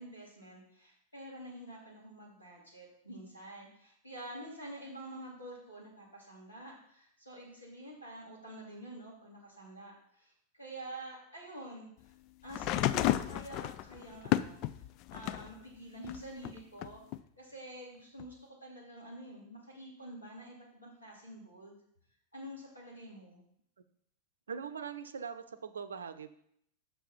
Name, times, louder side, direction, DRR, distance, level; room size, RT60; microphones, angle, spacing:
voice 1, 0.0-12.1 12.4-14.6 15.1-17.0 17.4-21.8 22.3-23.4, right 1 dB, 85° left, -4 dB, 2.8 m, -48 dB
sound 1, 12.5-15.5 16.0-17.2 18.2-18.3, left 13 dB, 40° left, 0.3 m, -32 dB
voice 2, 24.5-26.3, right 6 dB, 70° right, 11 dB, 0.6 m, -41 dB
6.5 x 5.9 x 5.4 m, 0.69 s
figure-of-eight pair, 90°, 0 cm